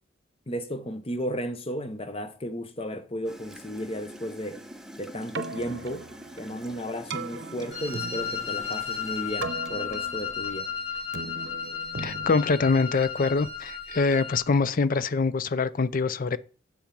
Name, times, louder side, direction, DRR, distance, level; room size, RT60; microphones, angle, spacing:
voice 1, 0.5-4.6 5.0-6.1 6.4-10.7, equal, 30° left, 0.9 m, -34 dB
Gurgling / Toilet flush, 3.2-10.3, equal, 5° right, 0.9 m, -46 dB
Keyboard (musical), 5.2-13.3, right 3 dB, 60° right, 0.8 m, -39 dB
Wind instrument woodwind instrument, 7.7-14.4, left 7 dB, 65° left, 5.4 m, -34 dB
voice 2, 12.0-16.4, left 4 dB, 45° left, 0.5 m, -24 dB
7.4 x 7.2 x 5.3 m
head